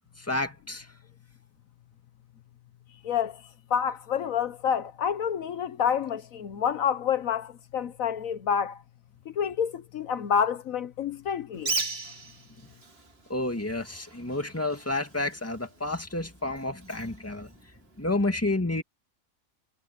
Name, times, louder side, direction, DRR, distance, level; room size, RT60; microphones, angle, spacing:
voice 1, 0.2-0.9 13.3-17.5 18.0-18.8, left 2 dB, 10° left, 2.0 m, -30 dB
voice 2, 3.0-3.4 3.7-8.8 9.3-11.7, left 8 dB, 75° left, 1.3 m, -28 dB
Bird, 11.5-18.2, right 3 dB, 45° right, 2.7 m, -39 dB
omnidirectional pair, 1.5 m